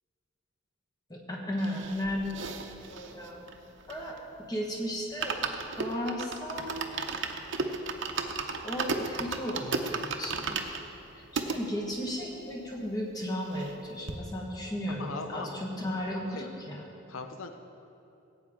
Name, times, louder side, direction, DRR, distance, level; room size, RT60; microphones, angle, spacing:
voice 1, 1.1-2.4 2.9-3.4 3.9-4.2 4.5-6.8 8.6-10.6 11.1-16.8, equal, 20° left, -1 dB, 1.4 m, -35 dB
sound 1, 1.6-4.4 4.7-4.8 5.0-11.6 12.2-12.3 12.4-12.5 12.8-13.8 14.1-14.2, right 4 dB, 60° right, 0.7 m, -35 dB
voice 2, 15.0-15.6 16.4-16.5 17.1-17.5, left 4 dB, 90° left, 6 dB, 0.6 m, -39 dB
16.5 x 8.4 x 3.7 m, 2.8 s
head